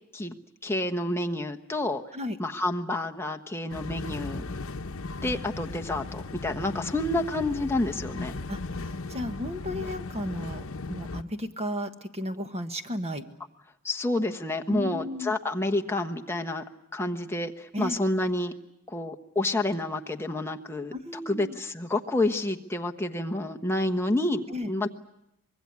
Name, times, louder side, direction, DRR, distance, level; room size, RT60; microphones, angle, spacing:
voice 1, 0.6-2.0 2.4-4.4 5.2-8.3 13.8-16.6 16.9-18.5 18.9-20.9 21.3-24.9, left 2 dB, 10° left, 4 dB, 1.1 m, -29 dB
sound 1, 3.7-11.2, left 3 dB, 70° left, 1.0 m, -36 dB
voice 2, 9.1-13.2 14.7-15.3 17.7-18.0 20.9-21.6 24.5-24.7, left 1 dB, 30° right, 8 dB, 1.4 m, -34 dB
25.0 x 21.5 x 9.5 m, 0.83 s
head